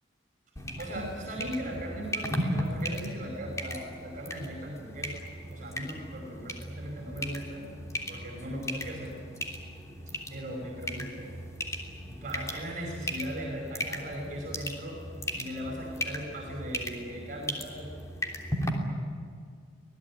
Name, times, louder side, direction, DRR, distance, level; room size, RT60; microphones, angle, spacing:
sound 1, 0.6-18.7, equal, 15° left, 3.2 m, -37 dB
voice 1, 0.8-5.2 5.5-7.6 8.1-9.1 10.3-11.3 12.1-15.0 15.3-17.9, equal, 45° right, 0 dB, 5.4 m, -38 dB
26.0 x 18.5 x 9.8 m, 2.2 s
head